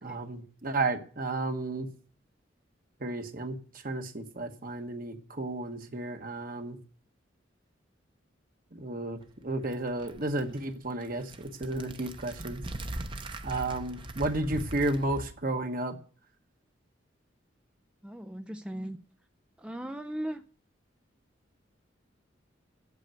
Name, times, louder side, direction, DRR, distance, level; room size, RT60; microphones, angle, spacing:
voice 1, 0.0-1.9 3.0-3.6 3.8-6.8 8.7-12.6 13.4-15.9, right 2 dB, 50° right, 6 dB, 1.3 m, -32 dB
sound 1, 9.3-15.3, right 1 dB, 25° right, 0.8 m, -41 dB
voice 2, 18.0-19.0 19.6-20.4, right 1 dB, 5° right, 7 dB, 0.4 m, -37 dB
8.3 x 7.9 x 9.0 m, 0.43 s
head